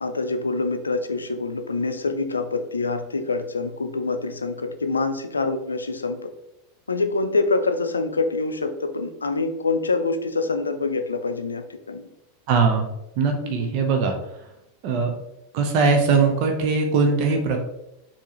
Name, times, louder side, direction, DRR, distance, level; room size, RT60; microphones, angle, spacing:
voice 1, 0.0-6.3 6.9-12.1 13.4-13.7, left 3 dB, 90° left, 8 dB, 0.4 m, -26 dB
voice 2, 12.5-12.9 13.2-14.1 14.8-15.1 15.5-17.6, right 4 dB, 50° right, 3 dB, 0.7 m, -20 dB
4.5 x 2.9 x 3.0 m, 0.86 s
hypercardioid pair, 90°, 0 cm